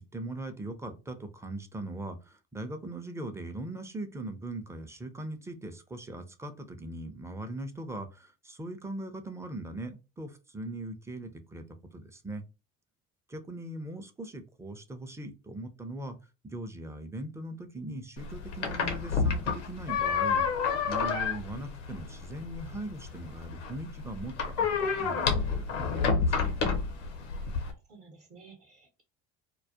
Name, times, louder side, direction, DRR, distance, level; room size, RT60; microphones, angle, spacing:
voice 1, 0.0-12.5 13.3-16.2 16.4-20.5 20.8-26.4, right 1 dB, 10° right, 7 dB, 0.4 m, -40 dB
sound 1, 18.2-27.7, left 5 dB, 85° left, 0.6 m, -30 dB
voice 2, 27.6-29.0, right 4 dB, 40° right, 3 dB, 0.7 m, -54 dB
2.2 x 2.1 x 2.7 m, 0.29 s
hypercardioid pair, 65°, 35 cm